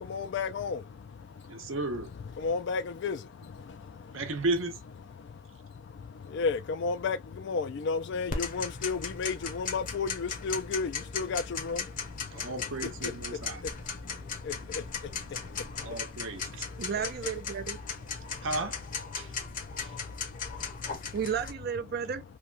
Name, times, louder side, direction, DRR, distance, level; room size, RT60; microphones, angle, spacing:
voice 1, 0.1-0.8 2.4-3.2 6.3-7.2 7.5-11.8, left 4 dB, 60° left, 0.3 m, -31 dB
voice 2, 1.5-2.1 4.1-4.8 12.3-13.6 15.8-16.7 18.4-18.8 19.2-19.3 19.8-20.0, right 2 dB, 75° right, 0.8 m, -34 dB
Tick-tock, 8.3-21.5, left 5 dB, 40° left, 0.7 m, -38 dB
voice 3, 16.8-17.8 21.1-22.2, right 7 dB, 50° right, 0.4 m, -33 dB
3.0 x 2.2 x 2.4 m
head